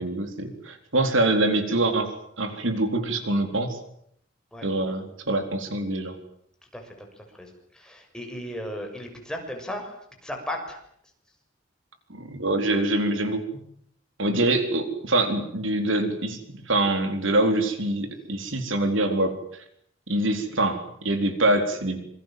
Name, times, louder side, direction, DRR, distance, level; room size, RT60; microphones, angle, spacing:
voice 1, 0.0-3.8 4.6-6.2 12.1-13.6 14.2-19.6 20.1-22.0, right 2 dB, 75° right, 7 dB, 4.1 m, -25 dB
voice 2, 6.7-10.8 14.4-14.5, left 1 dB, 5° left, 2 dB, 6.7 m, -36 dB
27.0 x 24.5 x 7.7 m, 0.69 s
head